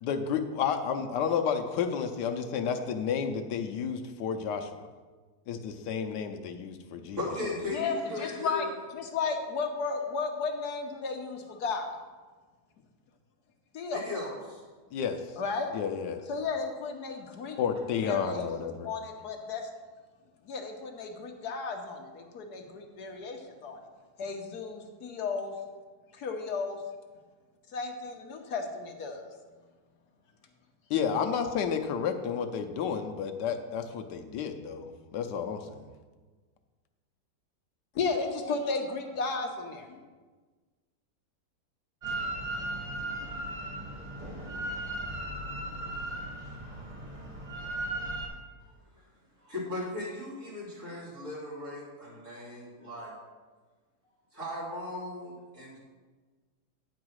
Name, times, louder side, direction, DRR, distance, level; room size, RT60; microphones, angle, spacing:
voice 1, 0.0-4.7 5.5-7.2 14.9-15.2 15.7-16.2 17.6-18.8 30.9-35.9, left 7 dB, 90° left, 6 dB, 1.3 m, -31 dB
voice 2, 7.1-8.7 13.9-14.6 49.4-53.1 54.3-55.8, left 2 dB, 45° right, -6 dB, 3.3 m, -37 dB
voice 3, 7.7-8.7 8.9-11.9 13.7-14.0 15.4-15.7 16.3-17.6 18.0-18.5 18.9-19.0 19.2-19.7 20.4-23.8 24.2-25.5 26.1-26.8 27.7-29.3 37.9-40.0, left 4 dB, 70° left, 4 dB, 1.4 m, -34 dB
Drill, 42.0-48.3, right 1 dB, 20° right, 1.5 m, -36 dB
9.5 x 4.9 x 6.3 m, 1.4 s
omnidirectional pair, 1.8 m